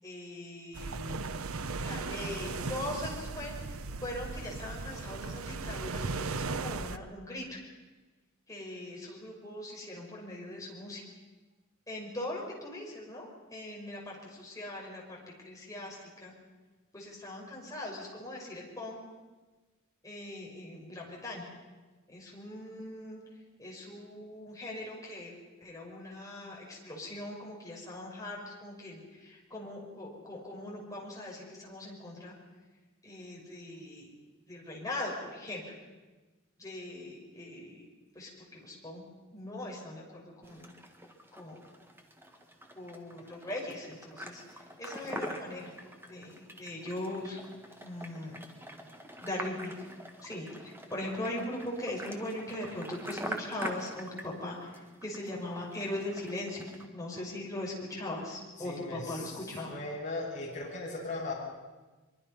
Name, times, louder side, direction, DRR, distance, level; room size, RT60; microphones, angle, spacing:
voice 1, 0.0-1.3 1.8-3.6 4.0-7.6 8.5-11.0 11.9-16.3 16.9-19.0 20.0-21.5 22.1-23.2 23.6-25.3 25.6-32.4 33.0-34.1 34.5-35.7 36.6-37.8 38.1-40.7 41.4-41.7 42.8-44.4 44.8-45.7 46.1-47.4 47.8-48.4 49.2-49.7 50.2-54.7 55.0-56.6 56.9-59.7, left 1 dB, 15° left, -3 dB, 5.5 m, -40 dB
sound 1, 0.7-7.0, right 4 dB, 90° right, 0.8 m, -37 dB
sound 2, 40.4-56.9, equal, 10° right, 1.7 m, -45 dB
voice 2, 58.6-61.3, left 2 dB, 35° left, -5 dB, 6.8 m, -38 dB
23.5 x 23.5 x 5.6 m, 1.2 s
head